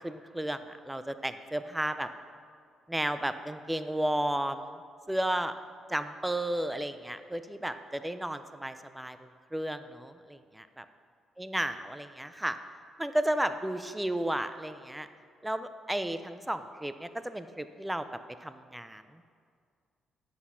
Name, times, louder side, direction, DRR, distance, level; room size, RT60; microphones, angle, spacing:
voice 1, 0.0-2.1 2.9-4.8 5.1-5.5 5.9-10.8 11.4-12.6 13.0-15.1 15.4-18.0 18.4-19.0, right 1 dB, 5° right, 10 dB, 0.5 m, -33 dB
9.8 x 6.3 x 5.6 m, 2.2 s
cardioid pair, 90°, 0 cm